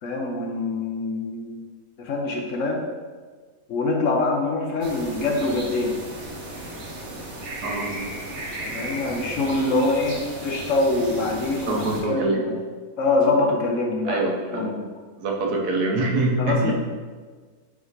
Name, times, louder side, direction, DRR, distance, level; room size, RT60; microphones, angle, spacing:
voice 1, 0.0-1.6 2.0-2.9 3.7-6.0 8.7-12.6 13.0-14.8 16.4-16.7, left 2 dB, 60° left, 1 dB, 1.0 m, -24 dB
sound 1, 4.8-12.0, right 1 dB, 50° right, 1.3 m, -35 dB
voice 2, 7.6-8.1 11.7-12.6 14.0-14.7 15.2-16.7, right 2 dB, 90° right, 0 dB, 1.5 m, -25 dB
5.0 x 4.7 x 4.0 m, 1.5 s
omnidirectional pair, 1.6 m